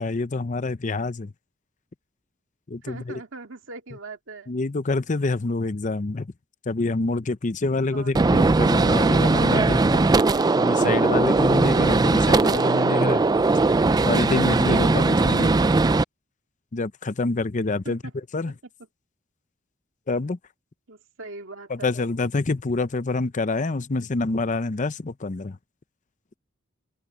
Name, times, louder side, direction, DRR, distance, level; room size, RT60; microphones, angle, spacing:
voice 1, 0.0-1.3 2.7-3.2 4.5-6.3 6.7-10.1 10.6-13.2 14.0-15.5 16.7-18.0 18.3-18.5 20.1-20.4 21.7-25.6, left 3 dB, 40° left, 0.6 m, -26 dB
voice 2, 2.8-4.5 7.9-8.1 15.4-15.7 17.8-18.1 20.9-21.9, right 3 dB, 70° right, 2.2 m, -40 dB
Gunshot gunfire, 8.1-16.0, right 3 dB, 20° right, 0.3 m, -19 dB
open air
head